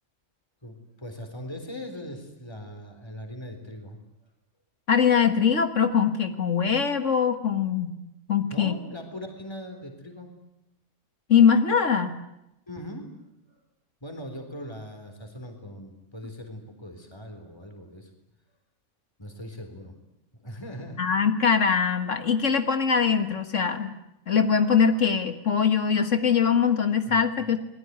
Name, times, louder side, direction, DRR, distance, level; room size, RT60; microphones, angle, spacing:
voice 1, 0.6-4.0 8.5-10.3 12.7-13.1 14.0-18.1 19.2-20.0 20.4-21.1 27.0-27.2, equal, 20° left, 5 dB, 3.9 m, -40 dB
voice 2, 4.9-7.9 8.3-8.7 11.3-12.2 21.0-23.9 24.3-27.6, left 6 dB, 75° left, 8 dB, 1.9 m, -22 dB
28.5 x 20.5 x 9.5 m, 0.87 s
omnidirectional pair, 1.3 m